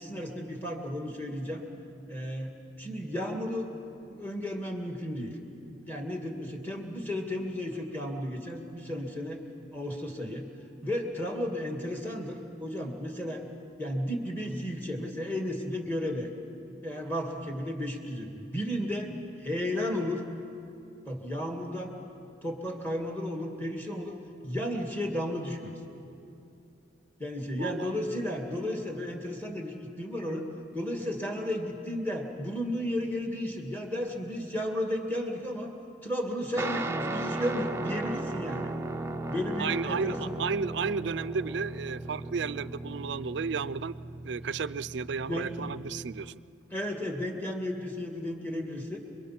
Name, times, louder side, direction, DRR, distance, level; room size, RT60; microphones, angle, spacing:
voice 1, 0.0-1.6 2.1-3.7 4.1-5.4 5.8-9.4 9.7-10.5 10.8-13.4 13.8-16.3 16.8-19.1 19.4-20.2 21.1-21.9 22.4-24.2 24.4-25.7 27.2-30.5 30.7-35.7 36.0-38.7 39.3-40.4 45.3-45.7 46.7-49.0, left 1 dB, 10° left, 2 dB, 2.2 m, -33 dB
voice 2, 27.6-27.9 39.6-44.0 44.2-46.3, right 5 dB, 70° right, 15 dB, 0.4 m, -33 dB
Guitar, 36.6-46.3, right 2 dB, 15° right, 0.6 m, -36 dB
28.5 x 22.5 x 6.0 m, 2.7 s
head